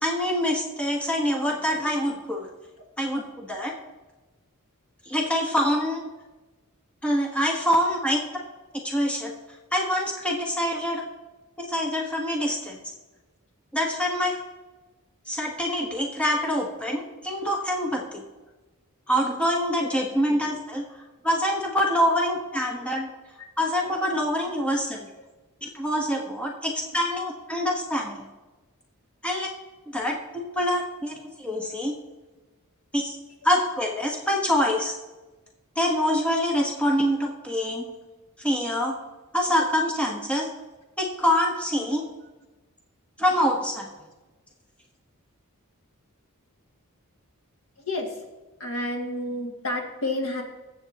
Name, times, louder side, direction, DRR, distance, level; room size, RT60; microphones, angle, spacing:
voice 1, 0.0-2.5 3.0-3.7 5.1-6.0 7.0-8.2 8.8-9.3 9.7-11.0 11.7-12.8 13.7-14.4 15.3-18.2 19.1-20.8 21.2-23.1 23.6-25.1 25.6-28.3 29.2-29.5 29.9-31.9 32.9-33.2 33.4-34.9 35.8-37.9 38.4-38.9 39.3-40.5 41.0-42.1 43.2-43.9, equal, 5° left, -1 dB, 1.2 m, -25 dB
voice 2, 48.6-50.4, left 1 dB, 70° left, 1 dB, 2.0 m, -29 dB
20.0 x 7.9 x 2.9 m, 1.2 s
head